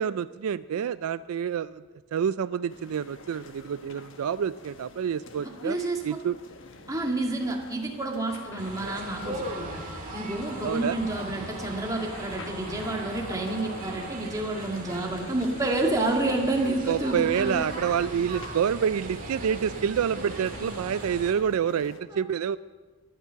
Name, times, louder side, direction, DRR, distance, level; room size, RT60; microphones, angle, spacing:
voice 1, 0.0-1.8 2.1-5.8 6.0-6.4 10.6-11.0 16.9-22.6, right 8 dB, 80° right, 16 dB, 0.3 m, -28 dB
sound 1, 2.7-22.0, left 3 dB, 60° left, 1.2 m, -47 dB
voice 2, 5.4-6.0 6.9-9.8 10.1-17.6 22.1-22.2, right 2 dB, 15° right, 0 dB, 1.9 m, -29 dB
sound 2, 8.6-14.1, equal, 80° left, 5.2 m, -43 dB
sound 3, 8.6-21.3, right 2 dB, 40° right, 2.2 m, -39 dB
13.5 x 11.0 x 6.8 m, 1.4 s
head